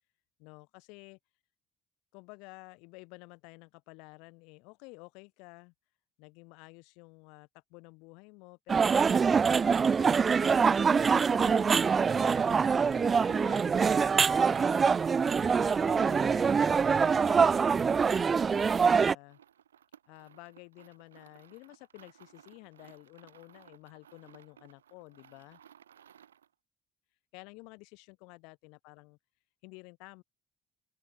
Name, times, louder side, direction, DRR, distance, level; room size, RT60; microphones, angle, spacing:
voice 1, 0.4-1.2 2.1-5.7 6.2-9.1 9.6-14.8 15.5-19.4 20.1-25.6 27.3-29.2 29.6-30.2, left 30 dB, 65° left, 2.6 m, -52 dB
sound 1, 8.7-19.1, right 5 dB, 35° right, 0.5 m, -24 dB
sound 2, 19.2-26.5, right 9 dB, 80° right, 6.5 m, -59 dB
open air
figure-of-eight pair, 45°, 0 cm